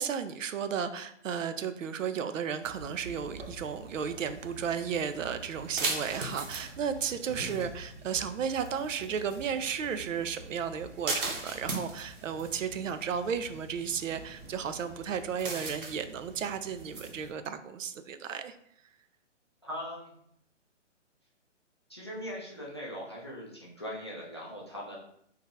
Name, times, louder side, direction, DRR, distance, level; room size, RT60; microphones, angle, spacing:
voice 1, 0.0-18.5, right 7 dB, 90° right, 10 dB, 0.5 m, -34 dB
sound 1, 2.6-17.3, right 3 dB, 45° right, 0.8 m, -40 dB
voice 2, 19.6-20.1 21.9-25.0, equal, 25° left, -4 dB, 0.4 m, -40 dB
2.8 x 2.4 x 3.7 m, 0.70 s
hypercardioid pair, 155°, 37 cm